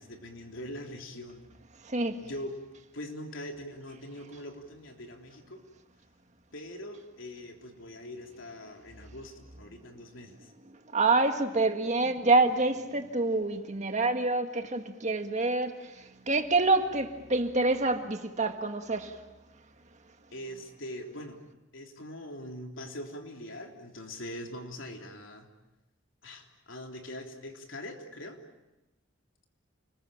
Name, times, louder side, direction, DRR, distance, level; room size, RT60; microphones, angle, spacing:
voice 1, 0.0-1.5 2.2-2.5 2.9-5.7 6.5-10.5 20.3-21.4 21.7-25.5 26.2-28.4, left 1 dB, 90° left, 3.5 m, -42 dB
voice 2, 1.8-2.2 10.7-19.2, right 3 dB, 40° right, 1.9 m, -27 dB
29.5 x 21.0 x 8.9 m
head